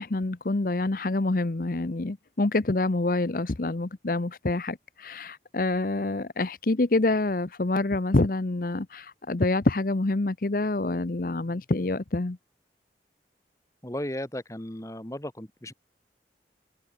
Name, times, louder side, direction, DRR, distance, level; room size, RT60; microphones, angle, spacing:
voice 1, 0.0-12.4, left 2 dB, 50° left, 0.8 m, -27 dB
voice 2, 13.8-15.7, left 1 dB, 20° left, 1.7 m, -35 dB
head